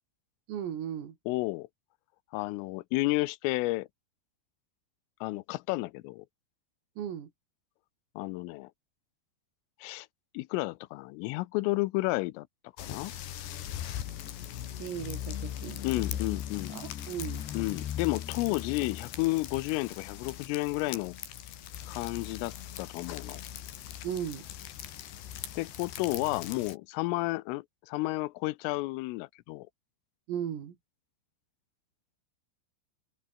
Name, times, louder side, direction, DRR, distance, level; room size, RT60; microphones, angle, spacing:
voice 1, 0.5-1.2 7.0-7.3 14.8-16.0 16.7-17.5 24.0-24.5 30.3-30.8, right 9 dB, 90° right, 6.0 m, -36 dB
voice 2, 1.3-1.7 2.3-3.9 5.2-6.3 8.2-8.7 9.8-10.1 10.3-12.5 12.8-13.1 15.8-16.8 17.5-21.2 21.9-23.4 25.6-29.7, left 21 dB, 90° left, 3.3 m, -32 dB
sound 1, 12.8-26.8, left 11 dB, 60° left, 4.0 m, -39 dB
omnidirectional pair, 5.8 m